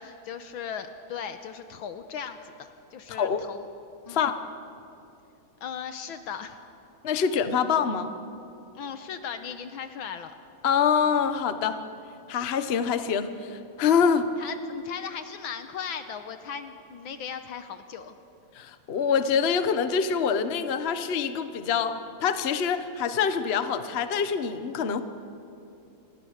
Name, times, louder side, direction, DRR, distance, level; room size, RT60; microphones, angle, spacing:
voice 1, 0.0-2.5 2.9-3.7 4.1-4.2 5.6-6.6 8.8-10.3 14.4-18.2, left 7 dB, 70° left, 9 dB, 1.6 m, -37 dB
voice 2, 3.1-3.5 4.1-4.4 7.0-8.1 10.6-11.8 12.3-14.3 18.6-25.0, left 6 dB, 45° left, 10 dB, 0.8 m, -25 dB
26.5 x 20.5 x 6.6 m, 2.7 s
omnidirectional pair, 2.3 m